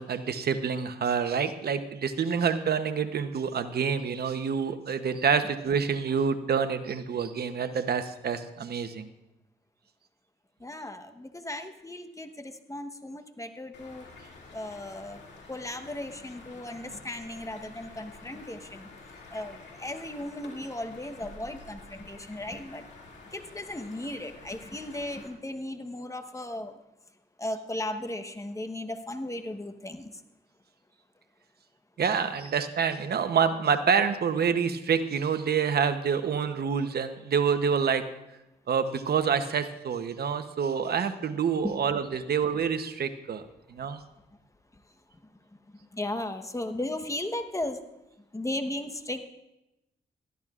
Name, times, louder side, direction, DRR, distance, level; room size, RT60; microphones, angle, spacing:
voice 1, 0.0-9.1 32.0-38.0 38.7-43.4 43.7-44.0, right 6 dB, 65° right, 10 dB, 0.9 m, -27 dB
voice 2, 10.6-14.1 14.5-15.2 15.5-18.9 19.3-22.8 23.3-26.7 27.4-30.2 41.6-41.7 45.9-47.8 48.3-49.3, left 1 dB, 20° left, 7 dB, 1.1 m, -36 dB
sound 1, 13.7-25.3, left 3 dB, 85° left, 2.4 m, -49 dB
20.0 x 13.5 x 2.5 m, 0.92 s
cardioid pair, 65°, 18 cm